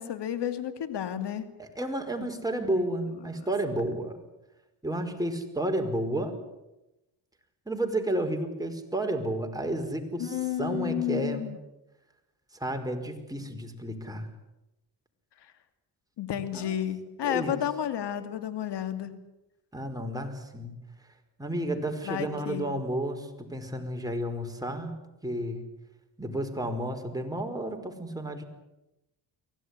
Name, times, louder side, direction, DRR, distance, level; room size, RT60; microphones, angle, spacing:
voice 1, 0.0-1.4 10.2-11.6 16.2-19.2 22.0-22.7, left 10 dB, 75° left, 10 dB, 2.8 m, -31 dB
voice 2, 1.6-4.2 4.8-6.4 7.7-11.5 12.6-14.3 16.5-16.8 17.2-17.6 19.7-20.8 21.4-24.9 25.2-25.6 26.2-28.4, right 1 dB, 10° right, 3 dB, 5.3 m, -31 dB
24.0 x 17.5 x 9.9 m, 0.95 s
cardioid pair, 75°, 42 cm